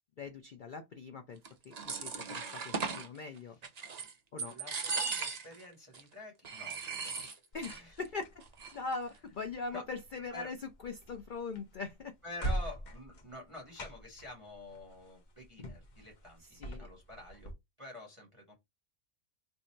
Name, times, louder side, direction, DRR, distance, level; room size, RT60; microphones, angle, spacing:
voice 1, 0.2-3.6 4.3-4.6 7.5-8.2 8.7-10.6 10.8-12.1 16.5-16.9, left 4 dB, 90° left, 0.4 m, -41 dB
sound 1, 1.5-3.1 3.6-4.1 4.4-5.6 5.9-6.0 6.4-7.8 8.1-8.2 8.4-8.9, right 5 dB, 55° right, 0.4 m, -37 dB
voice 2, 3.3-3.6 4.5-7.3 7.7-8.0 9.7-9.8 10.3-10.5 12.2-17.5 17.8-18.5, left 1 dB, 25° right, 1.2 m, -48 dB
sound 2, 7.5-17.5, right 1 dB, 45° left, 0.6 m, -44 dB
2.7 x 2.6 x 4.3 m
omnidirectional pair, 1.5 m